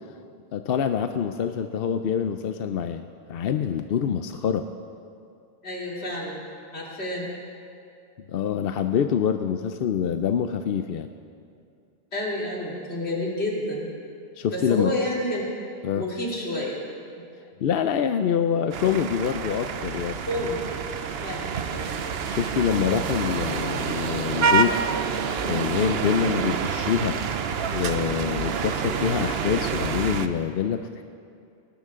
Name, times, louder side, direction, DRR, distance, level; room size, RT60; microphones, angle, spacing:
voice 1, 0.5-4.6 8.3-11.1 14.4-14.9 15.8-16.0 17.6-20.2 22.3-24.8 25.4-27.2 27.7-31.0, left 8 dB, 70° left, 8 dB, 0.8 m, -25 dB
voice 2, 5.6-6.4 6.7-7.2 12.1-13.9 14.5-15.5 15.9-16.8 20.3-20.9 21.2-21.9, left 1 dB, 85° left, -4 dB, 3.5 m, -29 dB
sound 1, 18.7-30.3, right 6 dB, 70° right, 1.0 m, -27 dB
19.5 x 19.0 x 3.7 m, 2.5 s
omnidirectional pair, 1.1 m